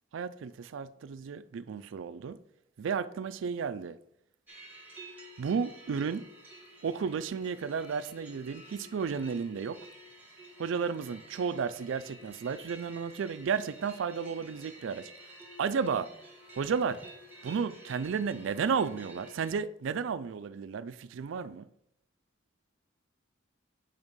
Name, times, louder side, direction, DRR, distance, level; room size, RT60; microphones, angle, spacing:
voice 1, 0.1-2.4 2.8-4.0 5.4-6.3 6.8-9.8 10.6-15.1 15.6-16.1 16.5-17.0 17.4-21.7, right 6 dB, 65° right, 0.3 m, -33 dB
sound 1, 4.5-19.5, right 1 dB, 10° right, 1.2 m, -51 dB
7.1 x 3.5 x 5.2 m
head